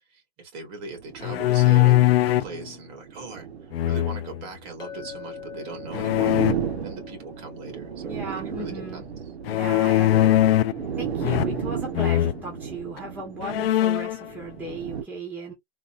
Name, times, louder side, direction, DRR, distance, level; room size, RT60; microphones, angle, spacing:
voice 1, 0.1-2.0 2.2-6.4 6.8-9.2, right 4 dB, 35° right, 1.8 m, -40 dB
sound 1, 0.8-15.0, right 8 dB, 75° right, 1.1 m, -35 dB
sound 2, 1.2-2.5 3.7-4.4 5.9-6.5 9.5-10.8 11.2-11.7 11.9-12.4 13.0-13.1 13.4-14.2, left 14 dB, 65° left, 0.5 m, -21 dB
Chink clink, 4.8-9.2, left 11 dB, 15° left, 0.5 m, -44 dB
voice 2, 8.0-9.0 9.5-10.3 11.0-15.5, right 2 dB, 5° right, 1.3 m, -36 dB
4.0 x 2.6 x 2.5 m
hypercardioid pair, 155°, 32 cm